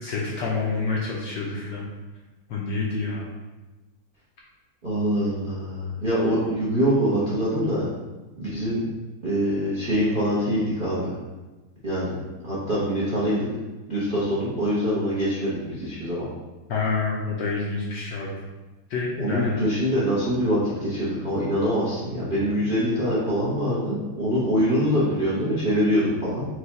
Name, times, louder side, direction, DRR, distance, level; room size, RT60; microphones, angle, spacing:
voice 1, 0.0-1.9 2.5-3.3 16.7-18.4 18.9-19.6 22.4-22.5, left 4 dB, 70° left, -4 dB, 1.1 m, -28 dB
voice 2, 4.8-7.8 8.4-8.8 9.2-11.1 11.8-12.1 12.4-13.5 13.9-16.3 19.2-26.5, equal, 50° right, -9 dB, 0.6 m, -24 dB
4.7 x 2.3 x 4.0 m, 1.1 s
omnidirectional pair, 2.4 m